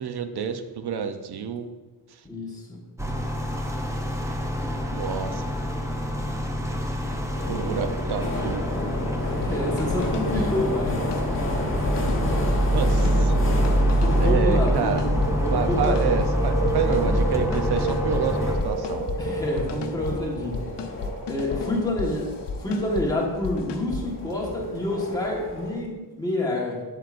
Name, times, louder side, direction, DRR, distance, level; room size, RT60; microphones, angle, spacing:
voice 1, 0.0-1.7 2.1-2.2 4.9-5.4 7.5-8.6 12.7-13.3 14.2-15.1 15.5-19.1, right 7 dB, 65° right, 8 dB, 0.7 m, -28 dB
voice 2, 2.2-2.8 9.4-11.1 13.9-15.0 15.3-16.0 19.2-20.7 21.3-22.3 22.6-26.8, left 1 dB, 10° left, -4 dB, 1.4 m, -28 dB
sound 1, 3.0-18.6, equal, 5° right, 0.5 m, -25 dB
sound 2, 7.3-25.7, left 1 dB, 30° left, 1.2 m, -31 dB
sound 3, 9.3-9.5 9.8-10.5 10.9-11.4 11.8-12.4 12.8-13.4 13.6-14.3 14.7-15.3 15.7-16.3 16.7-17.3 17.5-18.2 18.6-19.2 19.6-20.2 20.5-23.1 23.4-24.0, left 5 dB, 80° left, 0.7 m, -33 dB
8.4 x 7.6 x 2.5 m, 1.3 s
wide cardioid pair, 160°, 41 cm